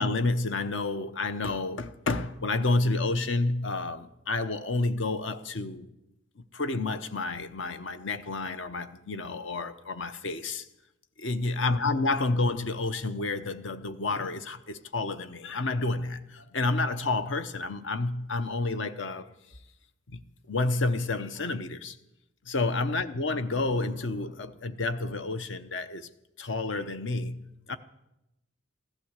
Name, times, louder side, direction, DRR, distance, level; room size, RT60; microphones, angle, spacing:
voice 1, 0.0-5.9 6.5-10.6 11.2-19.3 20.1-20.2 20.5-22.0 22.5-26.1 26.4-27.4 27.7-27.8, left 3 dB, 65° left, 0.8 m, -30 dB
15.0 x 12.0 x 8.0 m
head